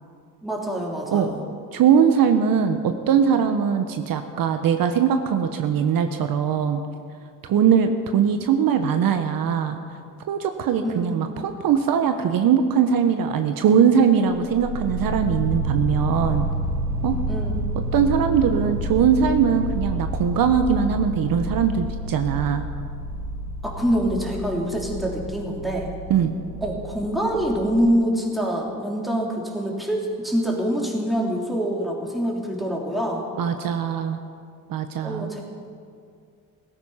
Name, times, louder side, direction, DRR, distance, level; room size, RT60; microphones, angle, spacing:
voice 1, 0.4-1.4 10.8-11.2 17.3-17.7 23.6-25.9 26.6-33.2 35.0-35.4, equal, ahead, -2 dB, 3.4 m, -25 dB
voice 2, 1.7-6.8 7.5-9.8 10.3-16.5 17.0-17.1 17.9-22.6 26.1-26.3 33.4-34.2 34.7-35.3, right 7 dB, 65° right, 7 dB, 1.1 m, -21 dB
sound 1, 14.3-27.8, right 1 dB, 50° right, 1.4 m, -29 dB
16.5 x 14.0 x 5.7 m, 2.3 s
cardioid pair, 90°, 37 cm